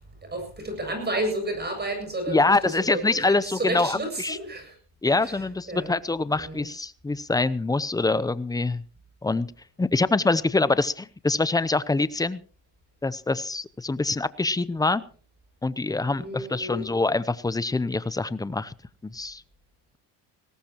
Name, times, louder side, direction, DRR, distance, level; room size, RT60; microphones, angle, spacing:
voice 1, 0.2-4.7 5.2-5.4 5.7-5.9 6.3-6.7 16.1-16.9, right 1 dB, 20° right, 5 dB, 7.4 m, -31 dB
voice 2, 2.3-4.4 5.0-8.8 9.2-9.5 9.8-12.4 13.0-15.0 15.6-18.7 19.0-19.4, left 3 dB, 10° left, 17 dB, 0.6 m, -25 dB
20.5 x 17.5 x 3.0 m, 0.38 s
cardioid pair, 105°, 44 cm